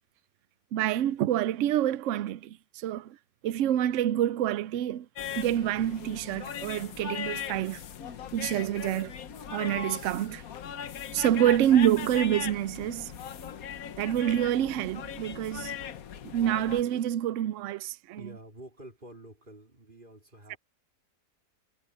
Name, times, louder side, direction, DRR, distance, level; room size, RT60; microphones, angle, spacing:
voice 1, 0.7-3.2 3.4-5.1 5.3-7.8 8.3-9.1 9.5-10.4 11.1-13.1 14.0-15.8 16.2-18.2 20.5-20.6, right 11 dB, 90° right, 0.6 m, -27 dB
sound 1, 5.2-16.8, left 8 dB, 60° left, 1.4 m, -39 dB
voice 2, 18.2-20.6, right 1 dB, 30° right, 4.3 m, -48 dB
omnidirectional pair, 1.9 m